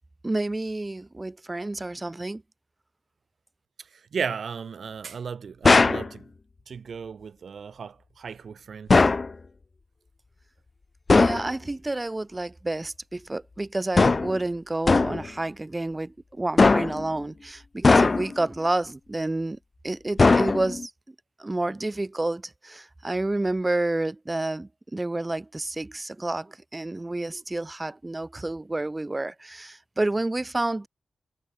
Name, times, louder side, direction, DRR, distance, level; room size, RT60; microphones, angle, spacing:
voice 1, 0.2-2.4 11.1-19.6 19.8-20.9 21.4-30.9, right 2 dB, 25° right, 1.6 m, -29 dB
voice 2, 4.1-6.2 6.7-9.1, right 6 dB, 80° right, 1.4 m, -35 dB
sound 1, 5.6-6.1 8.9-9.3 11.1-11.5 14.0-14.4 14.9-15.3 16.6-17.1 17.8-18.4 20.2-20.9, left 3 dB, 45° left, 0.7 m, -19 dB
cardioid pair, 55°, 0 cm